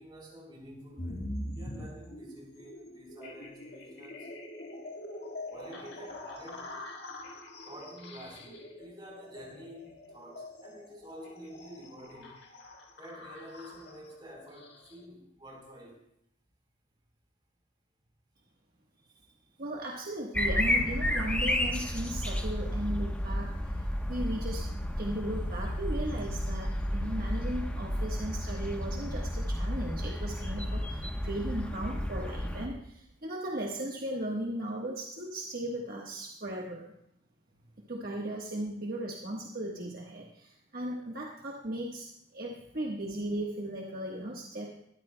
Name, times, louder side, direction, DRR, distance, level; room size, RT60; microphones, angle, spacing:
voice 1, 0.0-4.3 5.5-6.8 7.6-12.4 13.0-16.0 37.6-37.7, equal, 25° right, -2 dB, 4.1 m, -49 dB
sound 1, 1.0-15.0, left 1 dB, 55° left, 1.8 m, -44 dB
voice 2, 19.6-24.7 25.0-36.9 37.9-42.1 42.3-44.8, right 1 dB, 45° right, -1 dB, 1.3 m, -37 dB
sound 2, 20.3-32.7, left 1 dB, 5° left, 1.0 m, -32 dB
21.0 x 13.5 x 2.2 m, 0.75 s
head